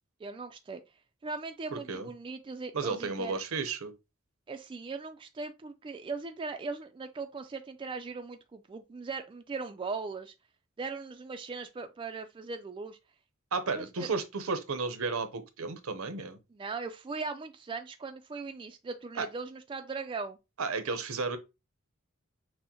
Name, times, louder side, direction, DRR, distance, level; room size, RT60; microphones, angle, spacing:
voice 1, 0.2-0.8 1.2-3.4 4.5-10.3 10.8-13.0 13.7-14.1 16.5-20.4, right 4 dB, 25° right, 0.3 m, -39 dB
voice 2, 1.7-2.1 2.7-3.9 13.5-16.4 19.2-19.3 20.6-21.4, right 4 dB, 75° right, 0.7 m, -33 dB
6.1 x 2.1 x 2.8 m
head